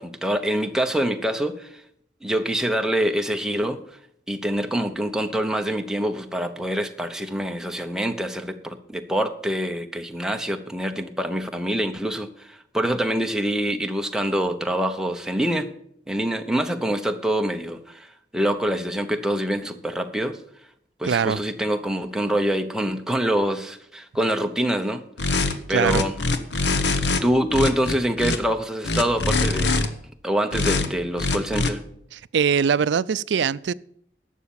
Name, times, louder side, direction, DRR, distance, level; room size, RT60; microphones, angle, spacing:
voice 1, 0.0-1.7 2.2-3.8 4.3-15.7 16.1-20.4 21.0-25.0 25.7-26.1 27.2-29.8 30.2-31.8, right 1 dB, 5° right, 0.8 m, -25 dB
voice 2, 21.0-21.4 25.4-26.1 32.1-33.7, right 6 dB, 75° right, 0.4 m, -22 dB
sound 1, 25.2-25.5 25.8-27.2 27.5-28.4 28.8-29.9 30.5-30.9 31.2-31.7, left 3 dB, 70° left, 1.0 m, -23 dB
11.5 x 7.3 x 7.0 m
head